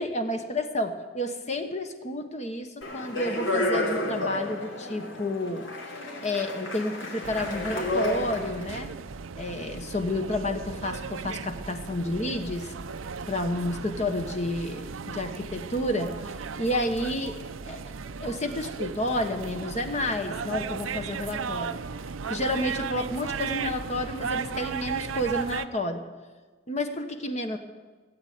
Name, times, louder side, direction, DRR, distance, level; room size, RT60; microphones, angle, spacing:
voice 1, 0.0-5.7 6.2-8.9 9.3-12.7 13.3-17.9 18.2-21.8 22.3-26.0 26.7-27.6, left 1 dB, 35° left, 6 dB, 1.1 m, -30 dB
Speech, 2.8-8.6, left 1 dB, 75° left, 3.3 m, -31 dB
sound 1, 7.2-25.7, right 5 dB, 85° right, 0.6 m, -36 dB
17.0 x 8.7 x 9.3 m, 1.3 s
head